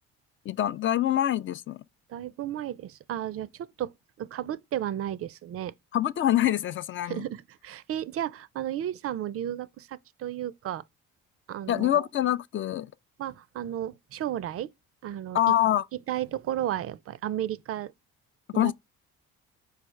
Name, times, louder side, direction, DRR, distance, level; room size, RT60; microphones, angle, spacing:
voice 1, 0.5-1.8 5.9-7.2 11.7-12.9 15.3-15.8 18.5-18.7, left 12 dB, 40° left, 0.4 m, -25 dB
voice 2, 2.1-3.9 4.2-5.7 7.0-10.8 11.5-12.1 13.2-14.7 15.0-15.4 16.1-17.9 18.5-18.7, right 11 dB, 50° right, 0.5 m, -33 dB
4.9 x 2.4 x 4.3 m
supercardioid pair, 80°, 30 cm